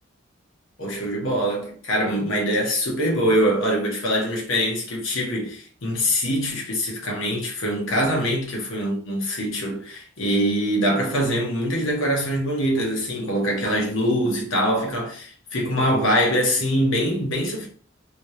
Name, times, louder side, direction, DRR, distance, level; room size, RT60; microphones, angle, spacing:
voice 1, 0.8-17.7, equal, 80° left, 1.2 m, -23 dB
3.2 x 2.9 x 3.1 m
head